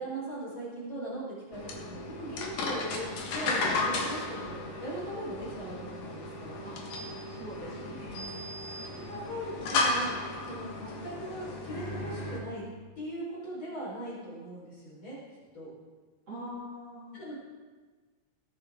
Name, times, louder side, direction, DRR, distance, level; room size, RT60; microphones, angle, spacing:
voice 1, 0.0-6.6 8.1-8.3 8.9-10.2 10.5-12.7 13.0-15.2 15.5-15.7 17.1-17.4, right 1 dB, 30° left, -7 dB, 5.2 m, -39 dB
sound 1, 1.5-12.4, left 2 dB, 65° left, 3.1 m, -34 dB
voice 2, 7.3-8.3 16.3-17.2, equal, 40° right, -7 dB, 3.5 m, -43 dB
21.5 x 9.1 x 3.8 m, 1.4 s
omnidirectional pair, 4.6 m